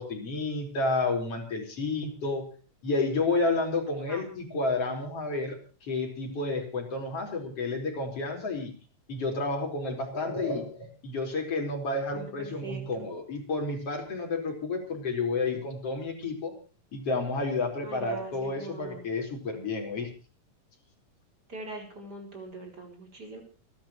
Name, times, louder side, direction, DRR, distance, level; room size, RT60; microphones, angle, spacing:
voice 1, 0.0-2.5 2.8-8.7 9.1-16.5 16.9-20.1, left 3 dB, 45° left, 1 dB, 5.3 m, -30 dB
voice 2, 12.1-13.1 17.8-19.1 21.5-23.4, right 3 dB, 30° right, 3 dB, 5.0 m, -42 dB
29.0 x 11.5 x 3.1 m, 0.38 s
omnidirectional pair, 3.9 m